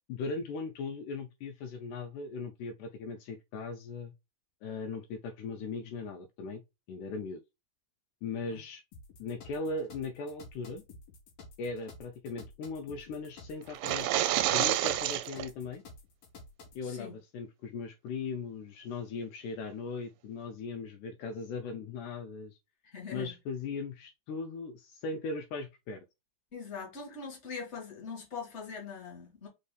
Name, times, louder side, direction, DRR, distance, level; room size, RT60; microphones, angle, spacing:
voice 1, 0.1-4.1 4.6-6.6 6.9-7.4 8.2-8.8 9.2-10.8 11.6-15.8 16.8-22.6 23.1-26.0, left 4 dB, 80° left, 2.0 m, -38 dB
sound 1, 8.9-16.8, left 3 dB, 60° left, 2.2 m, -52 dB
sound 2, 13.7-15.5, right 14 dB, 85° right, 2.1 m, -28 dB
voice 2, 16.8-17.1 22.8-23.3 26.5-29.5, left 5 dB, 35° left, 1.0 m, -42 dB
5.3 x 3.4 x 2.3 m
omnidirectional pair, 3.8 m